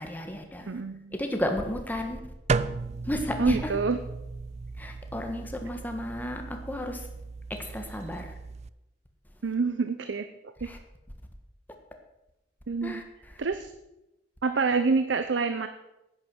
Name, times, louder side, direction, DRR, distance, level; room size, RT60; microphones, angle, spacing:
voice 1, 0.0-0.7 1.1-2.2 3.0-3.7 4.8-7.1 7.5-8.3 10.6-10.8 12.8-13.0, left 1 dB, 10° left, 4 dB, 1.5 m, -33 dB
voice 2, 0.7-1.1 3.4-4.0 9.4-10.3 10.6-10.7 12.7-13.0 13.4-13.7 14.4-15.7, right 4 dB, 80° right, 10 dB, 0.7 m, -27 dB
sound 1, 2.5-8.7, right 4 dB, 35° right, 0.4 m, -35 dB
10.5 x 9.5 x 6.2 m, 0.92 s
head